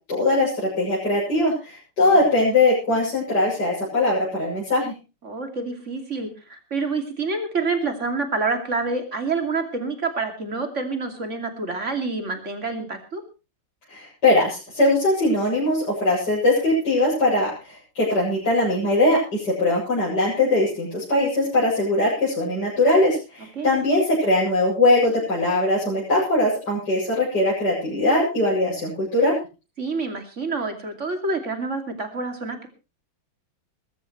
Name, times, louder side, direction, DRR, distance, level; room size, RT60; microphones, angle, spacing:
voice 1, 0.1-4.9 13.9-29.3, left 2 dB, 50° left, -7 dB, 8.2 m, -21 dB
voice 2, 5.2-13.2 23.6-23.7 29.8-32.7, right 3 dB, 35° right, 6 dB, 2.9 m, -27 dB
21.0 x 14.0 x 3.2 m, 0.31 s
omnidirectional pair, 2.4 m